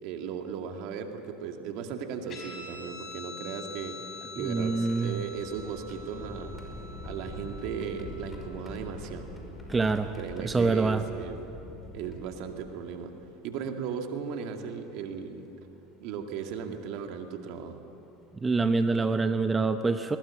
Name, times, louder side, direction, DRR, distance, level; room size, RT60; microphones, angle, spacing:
voice 1, 0.0-4.0 4.3-6.5 7.1-9.3 10.2-11.4 11.9-13.1 13.4-15.5 16.0-17.8, right 7 dB, 60° right, 4 dB, 2.3 m, -36 dB
Guitar, 2.3-9.2, left 3 dB, 45° left, 5.9 m, -45 dB
sound 1, 3.7-13.0 13.9-14.0 15.5-15.7 16.4-16.6 18.2-18.3 18.8-19.0, left 1 dB, 15° left, 5.3 m, -44 dB
voice 2, 4.4-5.2 9.7-10.1 10.4-11.0 18.4-20.2, right 3 dB, 20° right, 8 dB, 0.9 m, -26 dB
20.5 x 20.0 x 8.9 m, 3.0 s
hypercardioid pair, 85°, 0 cm